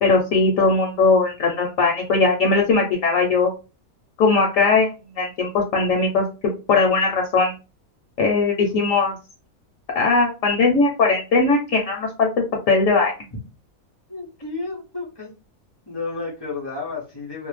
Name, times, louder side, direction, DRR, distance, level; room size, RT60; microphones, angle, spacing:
voice 1, 0.0-3.5 4.2-4.9 5.1-6.2 6.7-7.5 8.2-9.1 9.9-12.3 12.7-13.1, left 3 dB, 70° left, 1 dB, 0.9 m, -19 dB
voice 2, 14.1-15.3 15.9-17.5, left 3 dB, 35° left, -4 dB, 0.4 m, -31 dB
2.6 x 2.0 x 3.1 m, 0.31 s
omnidirectional pair, 1.6 m